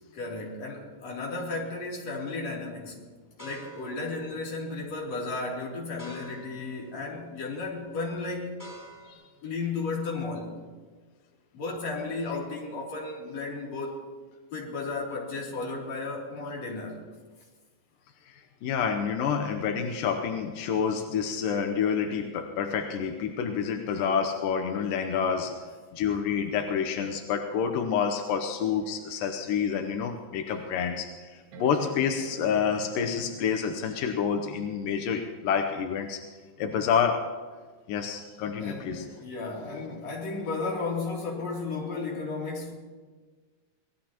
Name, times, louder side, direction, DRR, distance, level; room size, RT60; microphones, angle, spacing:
voice 1, 0.1-3.1 3.4-8.5 9.4-10.5 11.5-14.0 14.5-17.0 20.9-21.0 38.6-42.8, left 3 dB, 40° left, -3 dB, 3.8 m, -34 dB
sound 1, 1.9-2.2 2.8-9.1, right 1 dB, 5° left, 3.6 m, -50 dB
voice 2, 18.3-36.2 36.6-37.3 37.9-39.1, left 7 dB, 75° left, 5 dB, 2.0 m, -28 dB
sound 2, 29.4-29.5 30.1-30.2 31.5-34.0 35.7-35.8, right 5 dB, 75° right, 3.2 m, -45 dB
25.5 x 19.0 x 3.0 m, 1.4 s
omnidirectional pair, 5.0 m